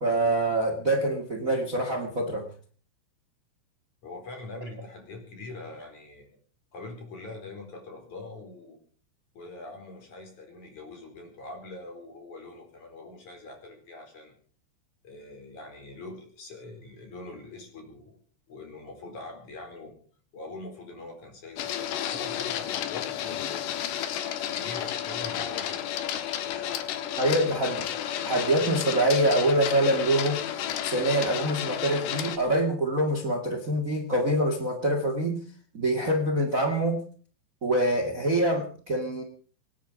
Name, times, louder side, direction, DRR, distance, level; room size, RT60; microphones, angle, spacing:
voice 1, 0.0-2.5 27.2-27.9 28.2-30.4 30.8-35.4 35.7-37.0 37.6-39.2, right 1 dB, 75° right, 5 dB, 0.7 m, -25 dB
voice 2, 4.0-6.4 6.7-8.8 9.3-14.3 15.0-18.2 18.5-19.9 20.3-23.7 24.5-27.4 27.6-27.8, left 2 dB, 40° left, 3 dB, 5.5 m, -43 dB
Printer, 21.6-32.4, left 10 dB, 70° left, 3.2 m, -32 dB
26.5 x 10.0 x 5.2 m, 0.43 s
omnidirectional pair, 5.7 m